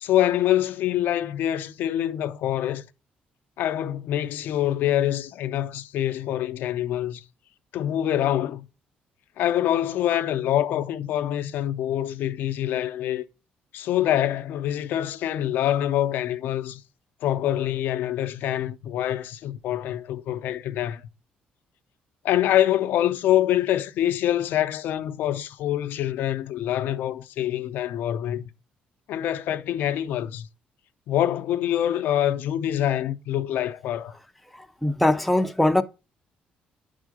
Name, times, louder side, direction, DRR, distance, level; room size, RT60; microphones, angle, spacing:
voice 1, 0.0-2.9 3.6-7.2 7.7-8.7 9.4-13.2 13.7-16.8 17.2-21.0 22.2-28.5 29.1-30.5 31.1-34.1, left 12 dB, 80° left, 0.6 m, -25 dB
voice 2, 34.6-35.8, left 1 dB, ahead, 0.5 m, -21 dB
9.9 x 3.7 x 4.9 m
cardioid pair, 135°, 3 cm